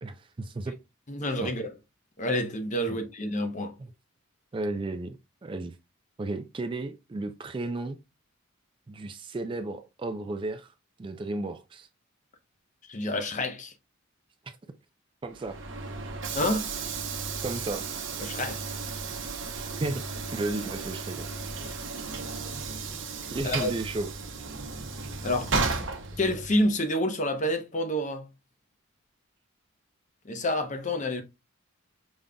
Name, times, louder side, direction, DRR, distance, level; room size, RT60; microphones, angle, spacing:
voice 1, 0.0-0.7 1.4-1.5 2.9-3.0 3.8-3.9 4.5-5.7 6.2-8.0 8.9-10.7 11.0-11.9 15.2-15.6 17.4-17.9 19.6-20.0 20.3-21.3 23.3-24.1, right 2 dB, 25° right, 0.3 m, -33 dB
voice 2, 1.1-1.7 2.2-3.7 12.9-13.7 16.3-16.7 18.2-18.6 23.4-23.7 25.2-25.5 26.2-28.3 30.2-31.2, left 1 dB, 35° left, 0.7 m, -28 dB
Train / Sliding door, 15.3-26.7, right 4 dB, 55° right, 0.8 m, -34 dB
5.2 x 3.6 x 2.2 m
head